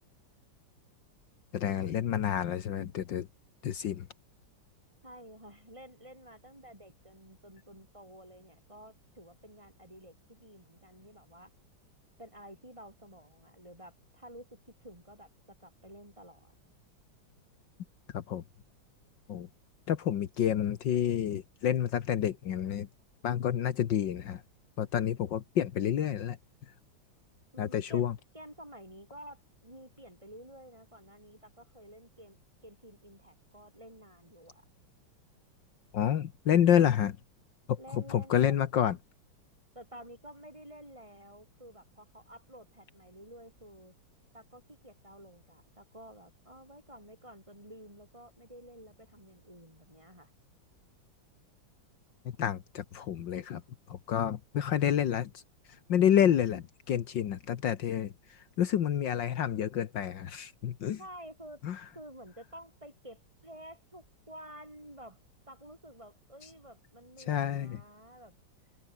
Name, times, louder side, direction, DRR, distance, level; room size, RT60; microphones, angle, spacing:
voice 1, 1.5-3.3 3.6-4.1 18.1-18.4 19.3-19.5 19.9-22.9 23.2-24.4 24.8-26.4 27.6-28.1 35.9-37.2 37.7-39.0 52.2-53.6 53.9-55.4 55.9-61.0 61.6-61.8 67.3-67.8, left 9 dB, 70° left, 1.8 m, -29 dB
voice 2, 5.0-11.5 12.2-14.5 14.8-16.5 27.5-32.4 32.6-34.6 37.8-38.5 39.7-43.9 44.3-50.3 61.0-61.6 61.9-65.2 65.5-68.4, equal, 15° right, 7.8 m, -51 dB
open air
omnidirectional pair, 2.1 m